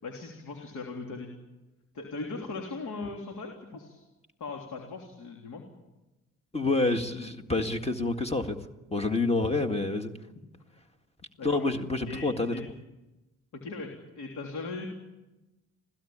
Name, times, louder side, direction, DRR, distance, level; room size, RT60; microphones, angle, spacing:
voice 1, 0.0-1.3 1.9-4.0 4.4-5.6 11.4-11.6 12.1-12.6 13.5-14.9, left 3 dB, 75° left, 2 dB, 3.4 m, -39 dB
voice 2, 6.5-8.6 8.9-10.1 11.4-12.7, left 3 dB, 20° left, 6 dB, 1.9 m, -28 dB
26.5 x 16.5 x 8.8 m, 1.0 s
cardioid pair, 90°, 30 cm